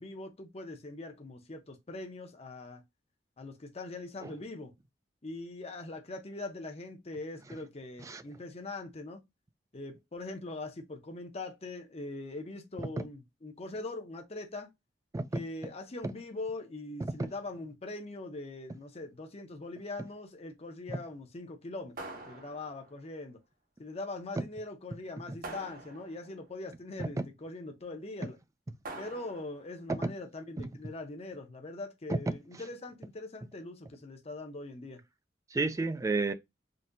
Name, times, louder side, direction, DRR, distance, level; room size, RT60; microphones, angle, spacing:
voice 1, 0.0-2.8 3.4-4.7 5.2-9.2 9.7-14.7 15.3-22.0 22.3-23.4 23.8-28.4 29.0-35.0, left 2 dB, 35° left, 0.7 m, -42 dB
sound 1, 22.0-23.0 25.4-26.4 28.8-29.7, right 2 dB, 50° right, 0.9 m, -45 dB
voice 2, 35.5-36.3, right 3 dB, 20° right, 0.3 m, -31 dB
3.9 x 2.7 x 2.5 m
head